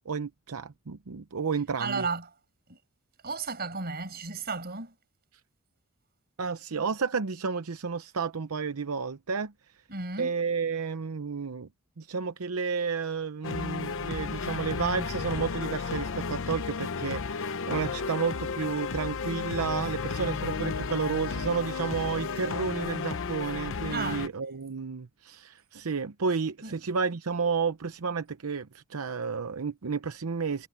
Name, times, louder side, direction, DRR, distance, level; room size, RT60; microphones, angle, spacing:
voice 1, 0.1-2.1 6.4-9.5 10.2-11.7 12.0-30.7, right 5 dB, 80° right, 0.7 m, -31 dB
voice 2, 1.8-2.3 2.7-2.8 3.2-4.9 9.9-10.3 23.9-24.3 26.6-26.8, right 4 dB, 45° right, 5.5 m, -33 dB
sound 1, 13.4-24.3, left 5 dB, 65° left, 0.7 m, -33 dB
head